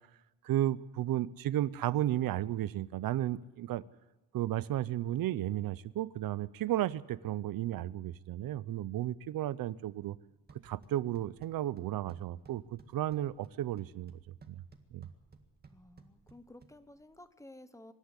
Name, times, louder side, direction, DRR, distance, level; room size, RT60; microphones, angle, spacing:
voice 1, 0.4-3.8 4.3-10.2 10.6-14.1 14.5-14.6 14.9-15.1, right 13 dB, 85° right, 18 dB, 0.7 m, -33 dB
sound 1, 10.3-17.3, right 4 dB, 30° right, 1.8 m, -60 dB
voice 2, 15.7-17.9, left 1 dB, 10° left, 11 dB, 1.1 m, -54 dB
24.5 x 12.0 x 9.9 m, 1.1 s
wide cardioid pair, 160°, 34 cm